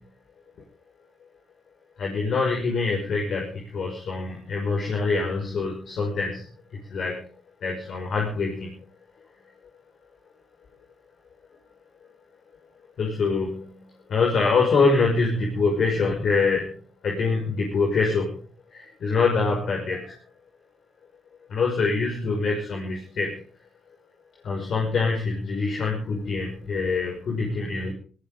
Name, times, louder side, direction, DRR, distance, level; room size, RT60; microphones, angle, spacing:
voice 1, 2.0-6.4 6.9-7.2 7.6-8.7 13.0-13.6 14.1-16.7 17.0-18.4 18.7-20.1 21.5-23.4 24.4-27.9, left 4 dB, 60° left, -1 dB, 5.7 m, -24 dB
19.0 x 17.5 x 3.8 m, 0.41 s
supercardioid pair, 55°, 0 cm